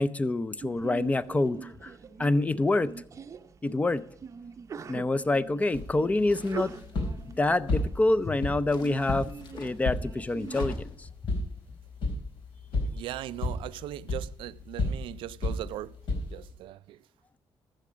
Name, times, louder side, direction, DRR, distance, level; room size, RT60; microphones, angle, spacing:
voice 1, 0.0-1.9 2.2-2.9 3.6-4.0 4.9-6.7 7.3-9.3 9.5-11.1, left 2 dB, 15° left, 0.5 m, -26 dB
Sneeze, 0.6-10.6, right 6 dB, 35° right, 0.6 m, -43 dB
sound 1, 5.7-16.5, left 2 dB, 80° left, 3.8 m, -34 dB
sound 2, 6.3-7.2 8.7-9.8 10.4-11.1, left 4 dB, 65° left, 1.7 m, -48 dB
voice 2, 12.9-16.0 16.3-17.0, right 14 dB, 90° right, 0.4 m, -39 dB
13.0 x 7.5 x 5.0 m
cardioid pair, 120°, 8 cm